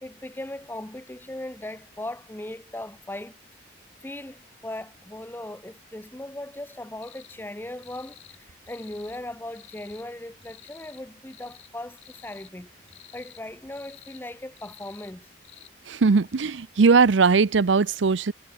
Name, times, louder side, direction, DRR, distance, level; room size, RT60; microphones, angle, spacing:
voice 1, 0.0-3.4 4.0-12.7 13.1-15.3, left 1 dB, 10° left, 0.6 m, -38 dB
sound 1, 7.0-7.4 7.8-8.4 8.7-9.2 9.5-10.1 10.4-11.0 11.3-11.7 12.0-12.5 12.9-13.4 13.7-14.2 14.6-15.1 15.4-15.7, left 15 dB, 85° left, 6.6 m, -51 dB
voice 2, 15.9-18.3, right 4 dB, 80° right, 0.6 m, -19 dB
head